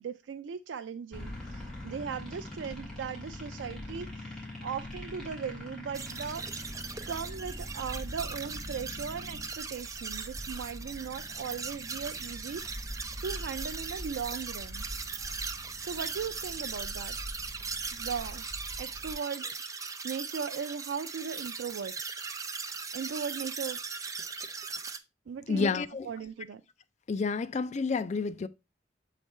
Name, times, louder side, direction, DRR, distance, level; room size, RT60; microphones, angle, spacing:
voice 1, 0.0-4.3 4.6-6.6 7.1-14.9 15.8-17.2 17.9-18.5 18.8-19.7 20.0-21.9 22.9-23.8 25.3-25.8 26.0-26.6, right 6 dB, 85° right, 0.4 m, -38 dB
sound 1, 1.1-19.1, left 1 dB, 5° left, 2.5 m, -43 dB
sound 2, 5.9-25.0, right 5 dB, 20° right, 0.5 m, -39 dB
voice 2, 25.5-26.1 27.1-28.5, left 4 dB, 40° left, 0.4 m, -29 dB
7.3 x 3.3 x 4.2 m
head